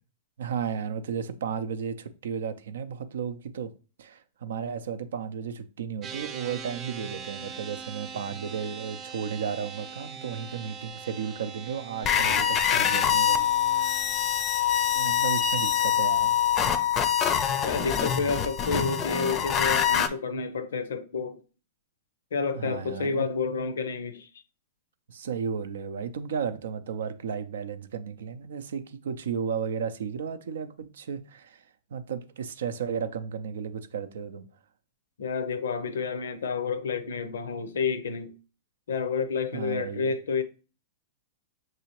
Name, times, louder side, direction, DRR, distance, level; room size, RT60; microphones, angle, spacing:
voice 1, 0.4-3.7 4.0-13.5 13.9-14.3 14.9-16.4 22.5-23.3 25.1-31.7 31.9-34.5 39.5-40.1, right 7 dB, 80° right, 0.4 m, -34 dB
sound 1, 6.0-16.8, right 6 dB, 30° right, 0.6 m, -43 dB
sound 2, 12.0-20.1, left 9 dB, 30° left, 0.5 m, -24 dB
voice 2, 17.6-21.4 22.3-24.3 35.2-38.3 38.9-40.4, left 5 dB, 80° left, 0.6 m, -30 dB
6.0 x 2.7 x 2.9 m
hypercardioid pair, 115°, 0 cm